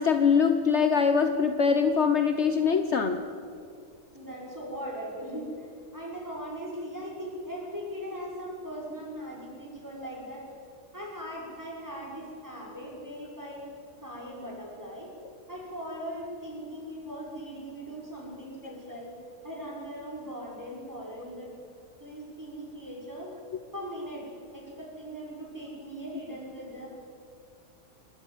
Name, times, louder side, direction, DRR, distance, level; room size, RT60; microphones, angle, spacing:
voice 1, 0.0-3.2, left 6 dB, 55° left, 7 dB, 1.1 m, -23 dB
voice 2, 4.1-10.5 10.9-13.7 14.0-15.1 15.5-19.2 19.4-21.5 22.0-23.4 23.7-24.3 24.5-26.9, equal, 10° right, -4 dB, 5.8 m, -39 dB
29.0 x 11.0 x 9.0 m, 2.4 s
omnidirectional pair, 1.5 m